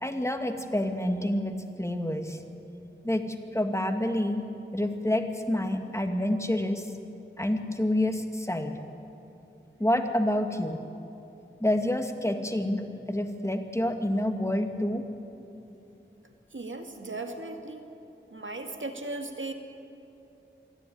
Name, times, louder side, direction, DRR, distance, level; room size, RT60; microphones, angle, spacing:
voice 1, 0.0-2.4 3.0-4.4 4.7-6.9 7.4-8.8 9.8-10.8 11.6-15.1, left 1 dB, 15° left, 5 dB, 1.9 m, -28 dB
voice 2, 16.5-17.9 18.3-19.5, right 2 dB, 70° right, 5 dB, 1.9 m, -37 dB
26.5 x 10.5 x 9.9 m, 2.8 s
wide cardioid pair, 40°, 20 cm